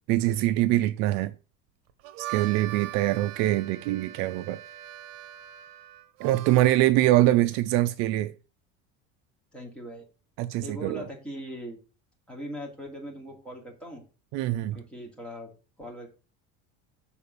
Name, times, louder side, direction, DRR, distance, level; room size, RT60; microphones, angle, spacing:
voice 1, 0.1-1.3 2.2-4.6 6.2-8.3 10.4-11.0 14.3-14.8, right 15 dB, 60° right, 0.5 m, -24 dB
Harmonica, 1.9-6.8, right 14 dB, 80° right, 0.9 m, -41 dB
voice 2, 6.4-7.1 9.5-10.0 10.6-11.8 12.3-14.0 14.7-16.1, equal, 5° left, 2.6 m, -41 dB
6.9 x 4.4 x 6.8 m
cardioid pair, 165°, 31 cm